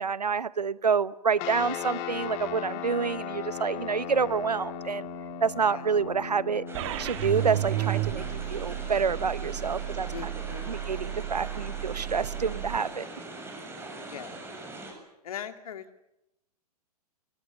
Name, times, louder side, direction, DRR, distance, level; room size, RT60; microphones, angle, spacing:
voice 1, 0.0-5.1 5.4-6.6 7.0-10.1 10.7-13.1, right 5 dB, 85° right, 18 dB, 1.0 m, -28 dB
sound 1, 1.4-13.2, left 7 dB, 35° left, 2.4 m, -39 dB
sound 2, 6.7-14.9, right 2 dB, 10° right, 7.6 m, -42 dB
sound 3, 6.7-12.8, right 14 dB, 50° right, 2.0 m, -33 dB
voice 2, 10.1-10.8 14.1-14.4 15.2-15.8, left 9 dB, 65° left, 9 dB, 2.5 m, -40 dB
25.0 x 24.5 x 7.3 m, 0.87 s
figure-of-eight pair, 110°, 20 cm